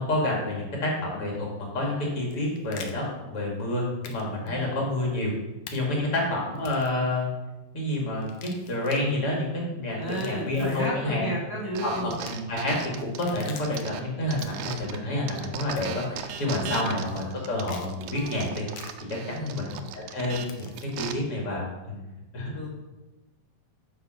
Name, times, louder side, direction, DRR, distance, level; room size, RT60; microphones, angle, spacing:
voice 1, 0.0-5.3 5.7-7.3 7.7-11.3 11.8-18.6 19.1-22.0 22.3-22.5, left 1 dB, 40° left, -2 dB, 2.7 m, -29 dB
sound 1, 2.2-2.9 4.0-4.2 4.5-4.6 5.7-5.8 6.6-7.0 8.2-9.0 9.9-10.9 12.1-12.3 13.0-13.8 14.3-14.8 15.8-16.1 16.6-16.7 17.6-17.9 18.7-18.9 20.4-20.9, left 7 dB, 90° left, 1.3 m, -45 dB
voice 2, 10.0-12.1 16.6-16.8 19.3-19.7 22.5-22.7, equal, 10° left, -5 dB, 1.0 m, -33 dB
sound 2, 11.7-15.0 15.3-21.1, right 9 dB, 80° right, 2.0 m, -38 dB
9.0 x 5.2 x 6.4 m, 1.1 s
omnidirectional pair, 4.0 m